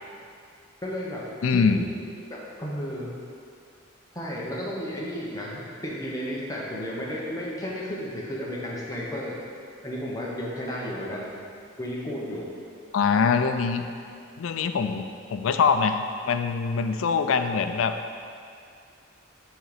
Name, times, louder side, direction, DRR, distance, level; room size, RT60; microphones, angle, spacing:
voice 1, 0.8-1.8 2.2-3.1 4.1-9.4 9.8-11.3 11.8-12.5, equal, 15° left, -5 dB, 1.0 m, -33 dB
voice 2, 1.4-1.8 12.9-13.9 14.4-15.0 15.3-17.9, left 5 dB, 80° left, 8 dB, 0.4 m, -23 dB
6.3 x 3.9 x 5.0 m, 2.4 s
head